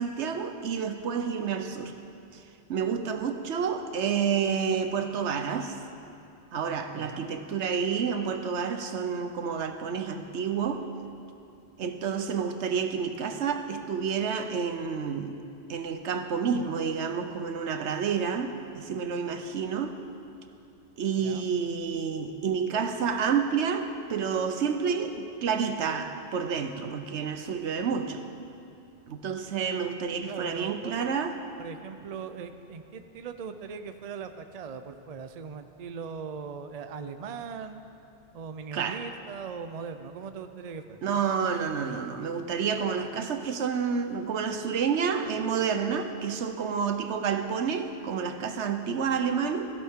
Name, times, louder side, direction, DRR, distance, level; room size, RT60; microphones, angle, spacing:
voice 1, 0.0-1.9 2.3-2.4 2.7-5.8 6.5-10.8 11.8-15.4 15.7-20.0 21.0-28.2 29.1-31.4 38.7-39.0 41.0-49.7, right 6 dB, 85° right, 8 dB, 1.1 m, -29 dB
voice 2, 6.9-7.3 21.2-21.5 30.3-31.1 31.6-37.8 38.3-41.0, right 6 dB, 45° right, 8 dB, 0.6 m, -40 dB
16.0 x 15.5 x 3.7 m, 2.6 s
omnidirectional pair, 1.1 m